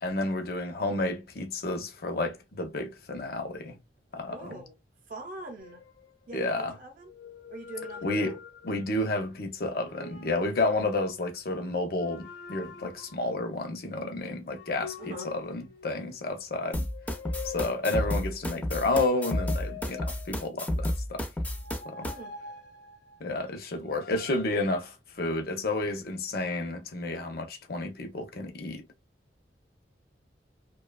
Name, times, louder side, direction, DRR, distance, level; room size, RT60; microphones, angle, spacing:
voice 1, 0.0-3.8 4.1-4.6 6.3-6.8 8.0-16.9 17.4-21.3 21.8-22.1 23.2-28.8, left 2 dB, 55° left, 0.6 m, -31 dB
voice 2, 4.3-4.7 5.1-5.9 6.3-7.1 7.5-8.4 15.0-15.3 22.0-22.4, right 2 dB, 45° right, 0.5 m, -43 dB
sound 1, 5.6-6.5 7.0-9.0 9.6-10.6 11.9-13.3 14.5-16.2 16.7-18.4 19.0-20.6 21.5-23.3 23.9-24.4, left 6 dB, 75° left, 0.9 m, -45 dB
sound 2, 16.7-22.1, left 1 dB, 10° left, 0.4 m, -31 dB
2.7 x 2.2 x 2.2 m
head